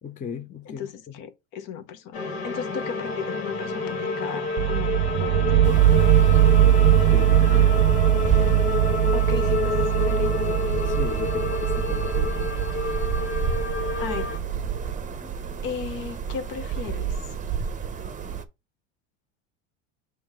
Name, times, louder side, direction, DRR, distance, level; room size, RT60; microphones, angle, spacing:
voice 1, 0.0-0.9 7.1-7.7 10.8-12.5, left 6 dB, 20° left, 0.6 m, -37 dB
voice 2, 0.6-5.6 9.1-10.7 14.0-14.3 15.6-17.3, left 7 dB, 55° left, 1.1 m, -36 dB
sound 1, 2.1-14.4, left 3 dB, 75° left, 2.1 m, -29 dB
sound 2, 4.6-14.4, right 12 dB, 55° right, 0.5 m, -21 dB
sound 3, 5.6-18.4, right 6 dB, 20° right, 0.8 m, -31 dB
6.9 x 3.2 x 4.9 m
supercardioid pair, 100°, 38 cm